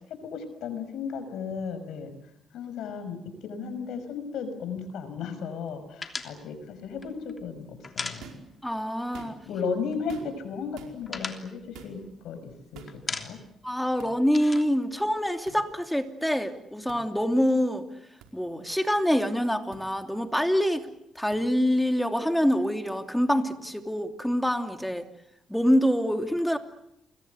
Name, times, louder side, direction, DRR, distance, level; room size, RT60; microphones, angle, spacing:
voice 1, 0.0-2.1 2.5-8.2 9.5-13.4, left 5 dB, 80° left, 10 dB, 5.7 m, -35 dB
sound 1, 6.0-8.8 9.1-9.2 9.5-10.2 10.6-12.5 12.9-13.6 13.9-15.7, left 3 dB, 30° left, 3.2 m, -38 dB
sound 2, 8.2-8.5 9.0-9.6 10.1-10.5 10.8-11.0 11.7-12.0 12.7-13.0 14.0-14.1 15.5-15.6 16.9-17.0 18.2-18.3 19.7-19.8 21.3-21.4, right 5 dB, 90° right, 4.7 m, -46 dB
voice 2, 8.6-9.3 13.6-17.8 18.3-20.8 21.2-25.1 25.5-26.6, equal, 5° left, 6 dB, 2.9 m, -25 dB
28.5 x 22.5 x 8.1 m, 0.79 s
cardioid pair, 90°, 0 cm